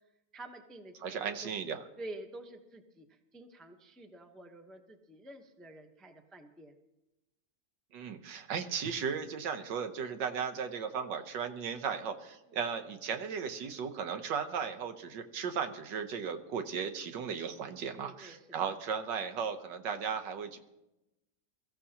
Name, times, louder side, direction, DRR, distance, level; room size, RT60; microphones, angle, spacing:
voice 1, 0.3-1.6 2.0-6.7 12.5-12.6 18.0-18.7, right 1 dB, ahead, 5 dB, 0.4 m, -49 dB
voice 2, 1.0-1.8 7.9-20.6, right 6 dB, 75° right, 8 dB, 1.6 m, -36 dB
22.5 x 14.0 x 2.9 m, 0.94 s
omnidirectional pair, 1.9 m